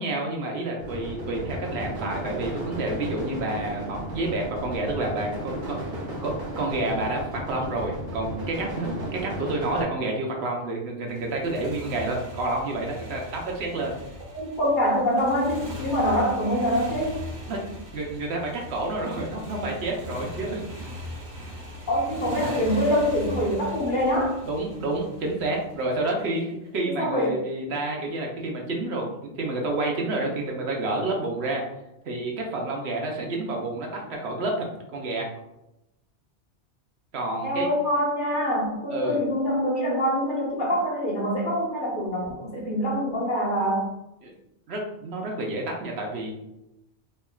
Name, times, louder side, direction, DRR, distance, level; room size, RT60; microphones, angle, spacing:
voice 1, 0.0-5.8 6.2-13.9 17.5-17.6 17.9-20.6 24.5-31.6 32.0-34.7 34.9-35.3 37.1-37.7 38.9-39.2 44.2-44.3 44.7-46.4, right 2 dB, 70° right, 0 dB, 1.0 m, -29 dB
sound 1, 0.8-9.8, right 1 dB, 45° right, 1.1 m, -34 dB
Motorcycle, 11.1-26.2, left 1 dB, 85° right, 1.3 m, -39 dB
voice 2, 14.3-17.2 21.9-24.4 26.8-27.4 37.4-43.9, equal, 50° left, -4 dB, 1.1 m, -25 dB
4.3 x 2.8 x 2.3 m, 0.89 s
omnidirectional pair, 1.2 m